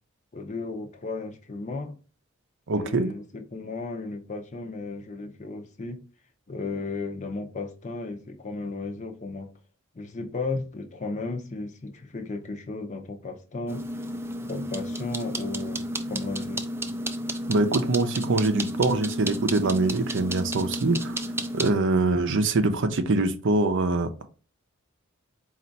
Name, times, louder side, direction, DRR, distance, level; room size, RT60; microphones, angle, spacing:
voice 1, 0.3-2.0 2.7-6.0 6.5-9.5 9.9-13.8 14.4-16.6, left 3 dB, 35° left, 0.6 m, -35 dB
voice 2, 2.7-3.1 17.5-21.2 21.5-24.3, right 2 dB, 60° right, 0.5 m, -24 dB
sound 1, 13.7-21.7, right 1 dB, 10° right, 0.3 m, -32 dB
4.3 x 2.4 x 3.9 m
head